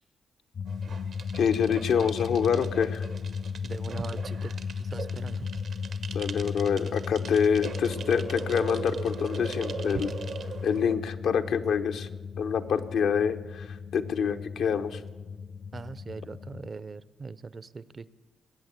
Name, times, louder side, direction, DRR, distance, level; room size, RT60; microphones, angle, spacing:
sound 1, 0.5-16.7, left 6 dB, 60° left, 0.4 m, -36 dB
sound 2, 0.7-11.0, right 5 dB, 70° right, 1.1 m, -40 dB
voice 1, 1.3-3.0 6.1-10.1 10.6-12.1 12.4-15.0, left 7 dB, 80° left, 6 dB, 0.9 m, -26 dB
voice 2, 3.6-4.5 4.8-5.5 15.7-18.1, right 4 dB, 45° right, 17 dB, 0.6 m, -41 dB
20.5 x 8.4 x 8.2 m, 1.3 s
cardioid pair, 60°, 0 cm